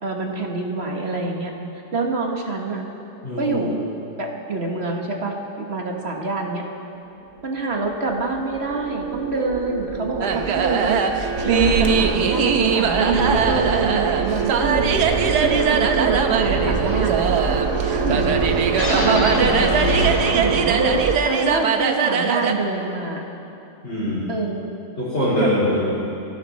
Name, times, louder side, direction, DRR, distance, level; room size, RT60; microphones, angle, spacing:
voice 1, 0.0-1.5 1.9-2.8 3.4-3.8 4.2-6.6 7.4-11.0 11.4-14.9 15.4-17.2 17.9-18.2 18.9-19.7 20.3-23.2 24.3-24.7 25.4-25.5, right 3 dB, 40° right, 1 dB, 1.8 m, -25 dB
voice 2, 3.2-3.8 18.0-18.4 23.8-24.3 25.0-25.9, equal, 40° left, -9 dB, 4.5 m, -23 dB
sound 1, 7.5-21.2, right 6 dB, 60° right, 1.1 m, -25 dB
sound 2, 10.2-22.5, right 6 dB, 90° right, 1.5 m, -22 dB
sound 3, 11.4-20.8, equal, 75° left, 2.8 m, -28 dB
28.0 x 12.0 x 4.3 m, 2.8 s
omnidirectional pair, 1.7 m